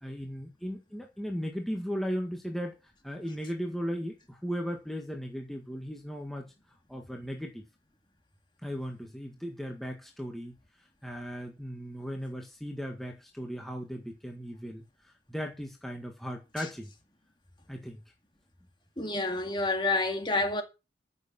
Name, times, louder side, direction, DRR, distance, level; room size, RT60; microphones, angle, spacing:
voice 1, 0.0-2.7 3.0-6.5 6.9-7.6 8.6-10.5 11.0-16.9 17.7-18.0, equal, ahead, 1.7 m, -37 dB
voice 2, 19.0-20.6, left 2 dB, 25° left, 2.2 m, -28 dB
14.5 x 6.9 x 5.9 m
head